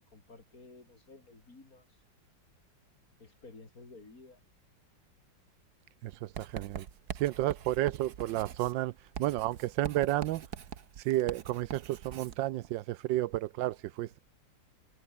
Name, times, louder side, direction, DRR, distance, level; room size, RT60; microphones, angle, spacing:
voice 1, 0.1-2.0 3.2-4.4, left 3 dB, 50° left, 4.8 m, -53 dB
voice 2, 6.0-6.9 7.2-8.9 9.2-10.4 11.0-14.2, right 15 dB, 80° right, 1.3 m, -31 dB
Writing, 6.4-12.4, right 8 dB, 60° right, 1.7 m, -43 dB
omnidirectional pair, 2.0 m